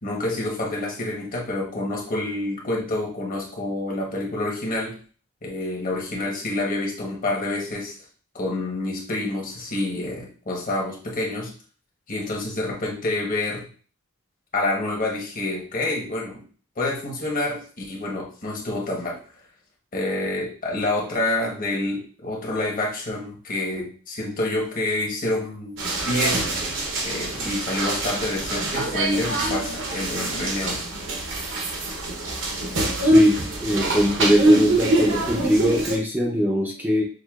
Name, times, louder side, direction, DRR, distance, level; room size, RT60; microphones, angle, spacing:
voice 1, 0.0-5.0 5.4-8.0 8.3-11.5 12.1-13.7 14.5-16.4 16.8-19.2 19.9-26.4 27.0-30.8, left 2 dB, 40° left, -2 dB, 1.1 m, -28 dB
sound 1, 25.8-36.0, right 2 dB, 60° right, 0.9 m, -24 dB
voice 2, 33.0-37.0, equal, 10° right, -2 dB, 0.6 m, -21 dB
6.4 x 2.4 x 2.4 m, 0.41 s
head